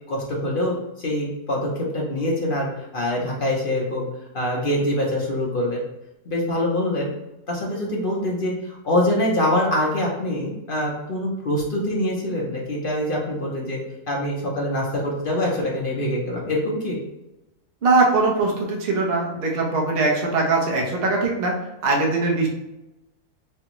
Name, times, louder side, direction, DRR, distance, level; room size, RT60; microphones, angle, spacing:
voice 1, 0.1-4.0 4.3-5.8 6.3-7.1 7.5-13.8 14.1-17.0, left 1 dB, 50° left, -3 dB, 0.7 m, -24 dB
voice 2, 17.8-21.5 21.8-22.5, right 3 dB, 45° right, -1 dB, 0.9 m, -21 dB
3.5 x 3.3 x 3.0 m, 0.94 s
omnidirectional pair, 1.7 m